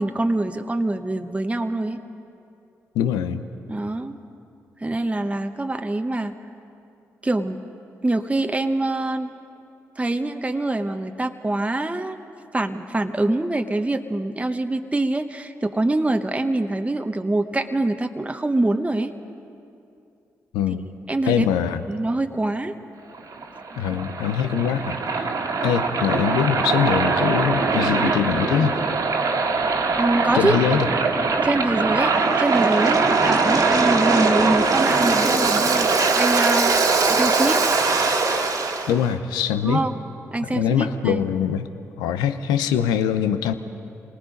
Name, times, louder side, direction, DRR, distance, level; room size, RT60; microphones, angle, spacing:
voice 1, 0.0-2.0 3.7-4.2 4.8-6.3 7.2-7.6 8.0-9.3 10.0-12.2 12.5-19.1 21.1-21.5 21.9-22.7 30.0-30.6 31.4-37.6 39.6-40.0 40.3-41.2, right 2 dB, 20° right, 6 dB, 1.1 m, -24 dB
voice 2, 2.9-3.4 20.5-20.8 21.3-21.8 23.8-25.3 25.6-28.8 30.3-30.9 38.9-39.8 40.5-41.7 42.0-43.5, left 9 dB, 85° left, 10 dB, 0.7 m, -23 dB
Waves surf, 23.1-38.9, right 4 dB, 60° right, 1.8 m, -21 dB
26.0 x 19.5 x 5.2 m, 2.7 s
hypercardioid pair, 45°, 7 cm